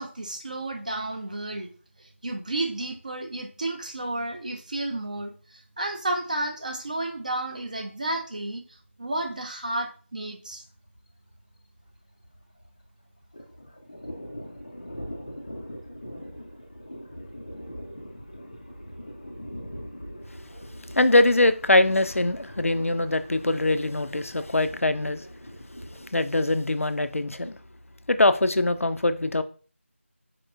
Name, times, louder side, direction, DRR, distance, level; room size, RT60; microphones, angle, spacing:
voice 1, 0.0-1.7 2.0-8.6 9.0-10.6, right 2 dB, 35° right, 0.5 m, -32 dB
Thunder, 10.5-10.7 10.9-11.0 11.3-12.8 13.1-26.1, equal, 20° left, 0.4 m, -42 dB
voice 2, 21.0-25.2 26.1-27.6 28.1-29.4, left 2 dB, 85° left, 0.4 m, -22 dB
4.6 x 2.9 x 2.5 m
figure-of-eight pair, 170°, 7 cm